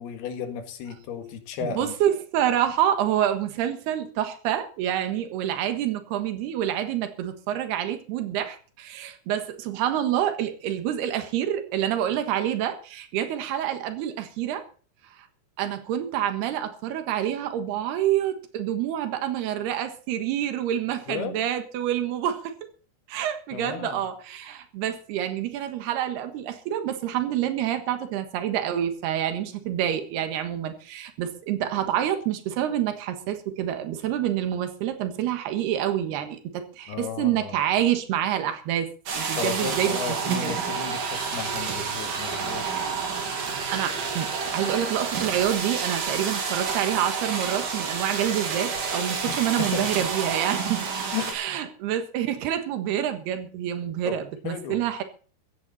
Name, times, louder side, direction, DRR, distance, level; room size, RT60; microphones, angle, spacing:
voice 1, 0.0-1.9 21.1-21.4 23.5-24.0 36.9-37.7 39.4-42.7 49.3-50.1 51.1-51.4 54.0-54.8, left 7 dB, 80° left, 6 dB, 3.7 m, -34 dB
voice 2, 1.6-14.6 15.2-15.3 15.6-22.5 23.1-38.9 39.1-40.0 40.3-40.6 43.3-43.4 43.7-50.8 51.3-55.0, right 11 dB, 85° right, 8 dB, 3.5 m, -27 dB
sound 1, 39.1-51.3, right 5 dB, 60° right, 4.2 m, -29 dB
15.5 x 15.0 x 4.2 m, 0.40 s
omnidirectional pair, 4.5 m